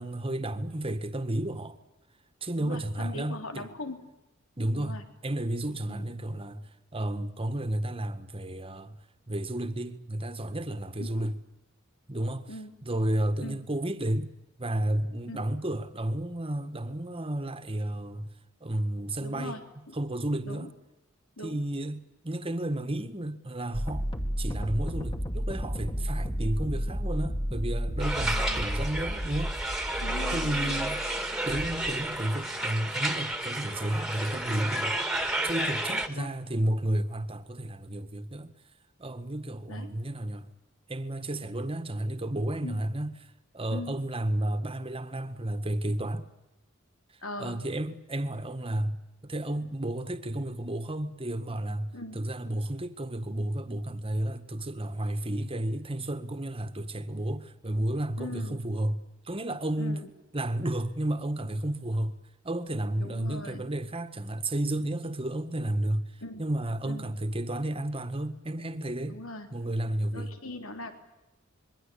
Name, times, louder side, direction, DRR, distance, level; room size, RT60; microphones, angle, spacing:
voice 1, 0.0-1.8 2.4-3.7 4.6-5.0 5.2-9.0 9.3-11.4 12.1-12.5 12.8-14.3 14.6-18.3 18.6-19.6 19.9-20.7 21.4-24.1 24.4-29.9 30.3-31.0 31.4-35.0 35.4-38.5 39.0-40.5 40.9-43.1 43.5-46.3 47.4-49.0 49.2-59.0 59.3-60.0 60.3-62.2 62.4-69.2 69.5-70.3, right 1 dB, 25° right, 1.8 m, -32 dB
voice 2, 2.6-4.0 4.7-5.0 5.9-6.1 11.0-11.2 12.5-12.7 13.4-13.6 15.3-15.5 19.2-20.0 20.4-20.7 21.4-21.6 28.2-28.6 30.0-30.8 35.9-36.3 39.7-39.9 42.6-42.8 43.7-44.0 47.2-47.6 51.9-52.2 58.2-58.6 59.8-60.1 63.0-63.6 66.2-66.4 66.8-67.1 69.1-69.5 70.1-70.9, left 1 dB, 85° left, 3.4 m, -40 dB
sound 1, 23.7-31.4, equal, 25° left, 2.6 m, -32 dB
sound 2, 28.0-36.1, right 1 dB, 5° right, 2.2 m, -31 dB
27.0 x 22.5 x 8.7 m
head